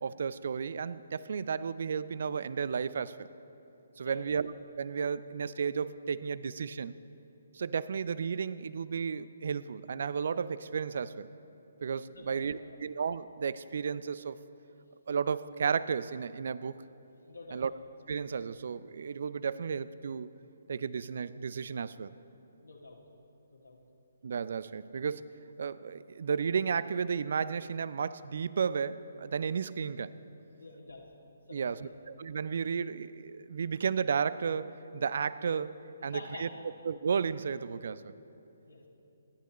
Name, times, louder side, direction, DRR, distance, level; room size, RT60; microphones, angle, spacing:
voice 1, 0.0-3.3 4.0-6.9 7.5-11.3 11.8-14.4 15.1-16.7 17.5-17.7 18.1-20.3 20.7-22.1 24.2-30.1 31.5-35.8 36.0-36.5 36.8-38.1, right 6 dB, 55° right, 17 dB, 0.4 m, -33 dB
voice 2, 12.1-12.6 17.3-17.6 22.6-23.0 23.5-23.8 30.6-31.1 31.5-31.9 36.0-36.6 38.7-38.9, left 2 dB, 85° left, -3 dB, 2.3 m, -48 dB
27.0 x 11.0 x 3.1 m, 2.9 s
figure-of-eight pair, 135°, 0 cm